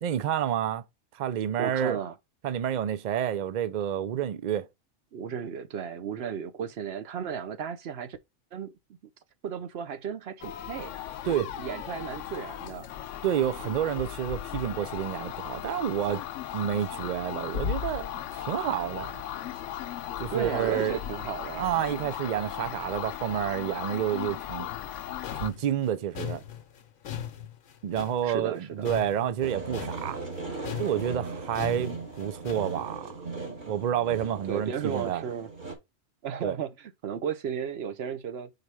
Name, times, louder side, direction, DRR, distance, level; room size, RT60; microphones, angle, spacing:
voice 1, 0.0-0.8 1.1-2.0 2.4-4.7 11.2-11.5 13.2-16.2 16.5-19.2 20.2-21.0 21.6-24.7 25.4-26.4 27.8-30.2 30.8-33.1 33.6-35.2 36.4-36.6, right 10 dB, 75° right, 0.4 m, -29 dB
voice 2, 1.6-2.1 5.1-8.2 8.5-8.7 9.4-10.9 11.4-12.9 20.3-21.7 28.2-28.9 34.5-35.5 36.2-38.5, right 7 dB, 55° right, 0.9 m, -34 dB
sound 1, 10.4-25.5, left 10 dB, 70° left, 0.9 m, -36 dB
sound 2, 24.7-30.4 30.6-32.8, left 10 dB, 85° left, 1.2 m, -39 dB
sound 3, 29.4-35.7, right 3 dB, 40° right, 1.5 m, -38 dB
5.0 x 4.1 x 4.6 m
omnidirectional pair, 1.4 m